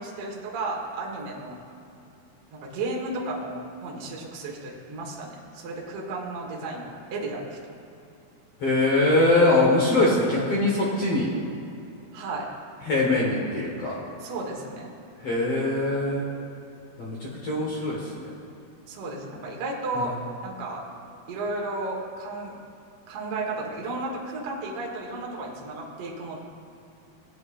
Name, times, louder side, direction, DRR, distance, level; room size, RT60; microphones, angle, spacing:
voice 1, 0.0-1.6 2.5-7.8 12.1-12.5 14.2-14.9 18.9-20.8 21.3-22.6 23.1-26.4, right 2 dB, 55° right, -2 dB, 1.7 m, -33 dB
voice 2, 8.6-11.3 12.9-13.9 15.2-16.3 17.0-17.2 17.4-18.0 20.0-20.1, left 2 dB, 60° left, -4 dB, 1.6 m, -22 dB
19.0 x 8.7 x 2.5 m, 2.7 s
omnidirectional pair, 4.8 m